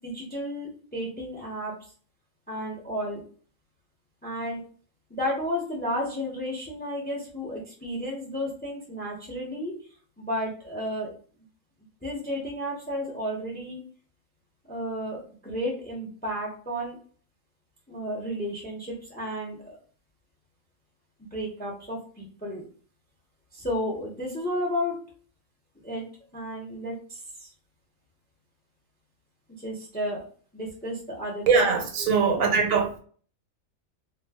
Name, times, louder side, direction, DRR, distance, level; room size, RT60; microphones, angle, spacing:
voice 1, 0.0-1.7 2.5-3.2 4.2-4.6 5.1-9.7 10.2-11.1 12.0-13.8 14.7-17.0 17.9-19.8 21.2-22.6 23.5-25.0 25.8-26.1 26.3-27.5 29.6-30.2 30.5-31.6 32.0-32.4, equal, 10° left, 0.5 m, -32 dB
voice 2, 31.5-33.0, right 5 dB, 75° right, 1.1 m, -22 dB
2.4 x 2.3 x 3.4 m
omnidirectional pair, 1.4 m